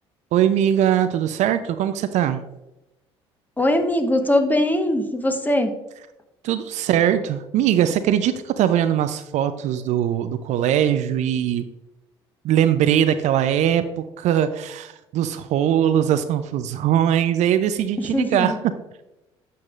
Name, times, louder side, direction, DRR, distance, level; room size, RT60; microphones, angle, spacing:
voice 1, 0.3-2.4 6.4-11.7 12.4-18.6, right 10 dB, 55° right, 10 dB, 0.5 m, -21 dB
voice 2, 3.6-5.7 18.1-18.6, left 1 dB, 10° left, 6 dB, 1.1 m, -21 dB
9.1 x 7.0 x 2.5 m, 0.94 s
hypercardioid pair, 55°, 14 cm